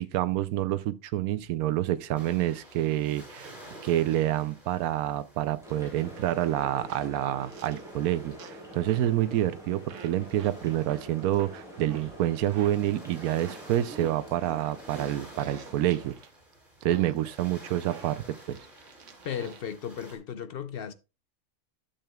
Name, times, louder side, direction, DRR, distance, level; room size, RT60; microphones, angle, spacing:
voice 1, 0.0-3.5 3.8-16.1 16.8-18.6, right 13 dB, 85° right, 1.1 m, -28 dB
sound 1, 2.1-20.2, right 1 dB, 35° right, 4.3 m, -52 dB
sound 2, 5.6-16.1, equal, ahead, 4.1 m, -46 dB
sound 3, 6.9-7.1 7.4-7.8 8.4-8.6 8.9-9.1 9.9-10.1 10.4-10.5 10.9-11.0 11.4-11.5 11.9-12.1 12.4-12.7 13.4-13.6 13.9-16.3 16.9-17.2 17.9-19.7, right 6 dB, 60° right, 1.1 m, -47 dB
voice 2, 19.2-20.9, left 8 dB, 60° left, 0.6 m, -35 dB
12.0 x 7.0 x 2.2 m
omnidirectional pair, 1.5 m